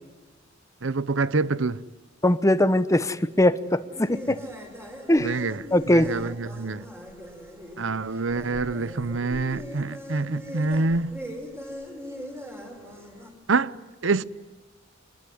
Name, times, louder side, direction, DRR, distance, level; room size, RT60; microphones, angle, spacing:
voice 1, 0.8-1.8 5.2-6.9 7.8-11.2 13.5-13.8 14.0-14.2, right 3 dB, 75° right, 0.8 m, -26 dB
voice 2, 2.2-4.4 5.1-5.3 5.7-6.1, left 1 dB, 15° left, 1.0 m, -21 dB
sound 1, 3.9-13.3, equal, 15° right, 5.7 m, -40 dB
25.5 x 21.5 x 9.5 m
head